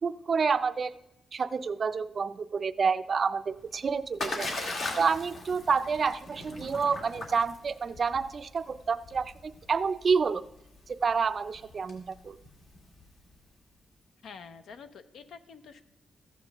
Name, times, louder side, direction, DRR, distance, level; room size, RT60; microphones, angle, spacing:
voice 1, 0.0-0.9 1.3-4.5 5.0-10.4 10.9-12.4, right 5 dB, 40° right, 13 dB, 0.4 m, -29 dB
Splash splatter, 3.5-13.3, left 2 dB, 70° left, 1.8 m, -40 dB
voice 2, 14.2-15.8, left 6 dB, 90° left, 11 dB, 0.6 m, -47 dB
13.5 x 8.3 x 3.5 m, 0.87 s
wide cardioid pair, 140°, 0 cm